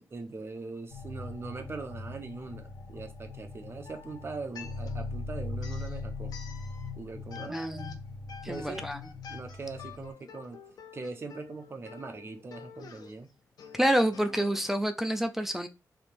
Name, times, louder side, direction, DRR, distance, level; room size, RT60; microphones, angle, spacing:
voice 1, 0.1-6.4 7.0-7.9 8.5-8.9 9.3-10.6 10.9-13.3, right 3 dB, 35° right, 0.8 m, -41 dB
sound 1, 0.9-10.1, left 3 dB, 85° left, 1.3 m, -40 dB
sound 2, 3.8-5.2 5.6-7.0 7.3-14.7, left 6 dB, 70° left, 0.7 m, -48 dB
voice 2, 7.5-8.0 8.4-9.0 13.7-15.7, equal, 5° right, 0.4 m, -28 dB
3.5 x 2.9 x 4.4 m
wide cardioid pair, 160°, 7 cm